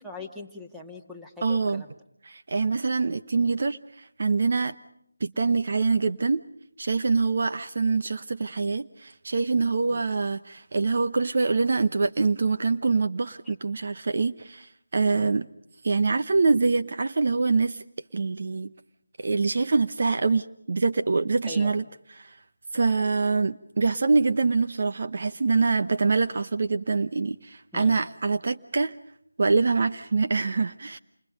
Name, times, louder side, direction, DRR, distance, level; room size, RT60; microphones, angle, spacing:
voice 1, 0.0-1.9 9.9-10.0 13.5-13.6 15.1-15.4 21.5-21.8 27.7-28.0, left 2 dB, 5° right, -1 dB, 1.9 m, -41 dB
voice 2, 1.4-1.8 2.3-4.8 5.2-6.4 6.8-15.5 15.8-17.8 18.1-18.7 19.2-21.8 22.2-22.4 22.7-28.9 29.4-31.0, right 4 dB, 50° right, 9 dB, 0.9 m, -25 dB
29.0 x 29.0 x 5.3 m, 0.73 s
figure-of-eight pair, 165°, 0 cm